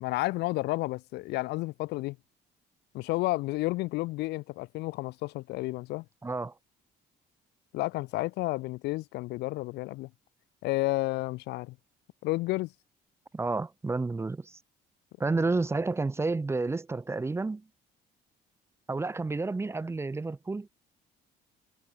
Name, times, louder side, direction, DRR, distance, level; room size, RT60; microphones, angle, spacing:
voice 1, 0.0-2.2 2.9-6.0 7.7-10.1 10.6-11.8 12.2-12.7, left 20 dB, 80° left, 0.6 m, -31 dB
voice 2, 6.2-6.5 13.3-14.6 15.2-17.7 18.9-20.7, right 3 dB, 15° right, 0.8 m, -30 dB
cardioid pair, 110°, 17 cm